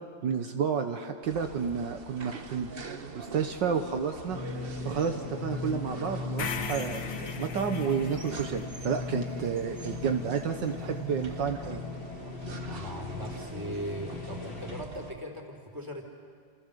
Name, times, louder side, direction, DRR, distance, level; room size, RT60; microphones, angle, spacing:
voice 1, 0.2-2.7 3.1-4.4 4.8-7.0 7.4-11.8, right 7 dB, 70° right, 5 dB, 1.8 m, -30 dB
sound 1, 1.2-15.1, right 3 dB, 35° right, 1.2 m, -43 dB
sound 2, 4.3-14.9, left 4 dB, 60° left, 2.2 m, -39 dB
sound 3, 6.4-10.5, left 6 dB, 90° left, 2.2 m, -40 dB
voice 2, 12.6-16.1, equal, 10° right, 2 dB, 3.6 m, -39 dB
28.0 x 28.0 x 6.8 m, 2.1 s
omnidirectional pair, 2.1 m